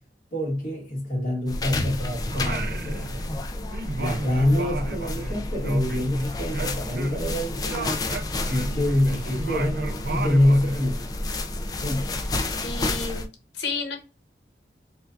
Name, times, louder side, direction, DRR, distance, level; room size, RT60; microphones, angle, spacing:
voice 1, 0.3-3.4 4.0-8.0 8.5-11.0 11.8-12.1, left 1 dB, 50° left, 1.6 m, -25 dB
sound 1, 1.5-13.3, left 2 dB, 20° left, 0.3 m, -30 dB
Singing, 2.3-3.5 3.7-7.4 7.7-10.9, right 3 dB, 55° right, 0.4 m, -34 dB
voice 2, 12.6-13.2 13.5-14.0, left 4 dB, 85° left, 1.0 m, -31 dB
4.5 x 2.3 x 2.5 m
head